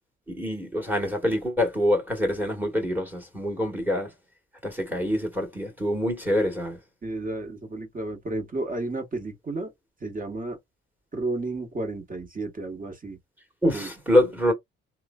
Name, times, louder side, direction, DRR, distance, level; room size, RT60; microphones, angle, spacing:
voice 1, 0.3-4.1 4.6-6.8 13.6-14.5, left 1 dB, 5° right, 1.3 m, -25 dB
voice 2, 7.0-9.7 10.0-10.6 11.1-13.2 13.7-13.9, right 2 dB, 25° right, 1.2 m, -32 dB
3.0 x 2.1 x 2.3 m
supercardioid pair, 60°, 30 cm